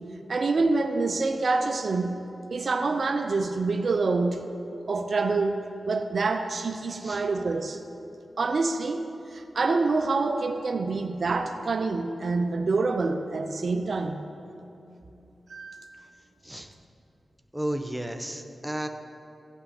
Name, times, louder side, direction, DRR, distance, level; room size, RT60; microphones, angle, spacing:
voice 1, 0.3-4.5 4.9-7.8 8.4-9.1 9.3-14.2 15.5-15.9, right 3 dB, 65° right, 6 dB, 0.5 m, -26 dB
voice 2, 17.5-18.9, right 1 dB, 5° right, 5 dB, 0.9 m, -33 dB
16.0 x 5.5 x 4.3 m, 2.9 s
cardioid pair, 45°, 0 cm